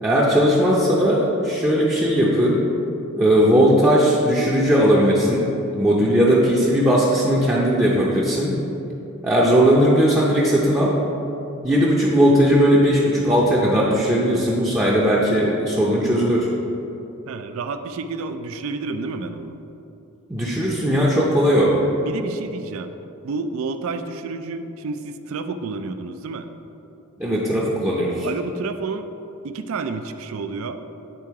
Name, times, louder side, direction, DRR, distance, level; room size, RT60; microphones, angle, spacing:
voice 1, 0.0-2.6 3.2-5.5 5.8-8.6 9.2-10.9 11.6-16.5 20.3-21.8 27.2-28.3, equal, 10° right, -6 dB, 0.6 m, -18 dB
voice 2, 17.3-19.6 22.0-22.9 23.2-26.5 28.2-29.1 29.4-30.8, right 4 dB, 65° right, 9 dB, 0.4 m, -30 dB
9.0 x 3.8 x 4.6 m, 2.9 s
head